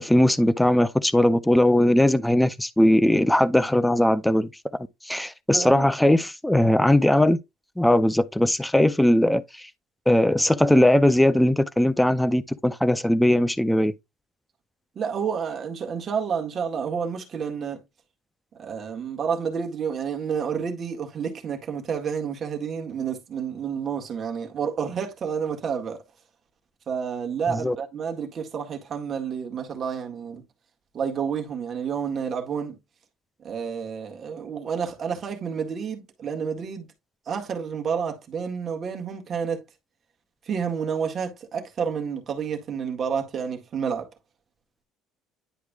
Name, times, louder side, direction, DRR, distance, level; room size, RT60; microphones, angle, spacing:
voice 1, 0.0-4.5 5.0-7.4 7.8-9.7 10.1-13.9 27.5-27.8, left 1 dB, 5° left, 0.4 m, -19 dB
voice 2, 5.5-5.9 15.0-17.8 18.5-26.0 26.9-30.4 30.9-32.8 33.4-36.9 37.3-39.6 40.5-44.1, right 6 dB, 35° right, 1.8 m, -29 dB
10.5 x 4.6 x 2.3 m
cardioid pair, 145°, 0 cm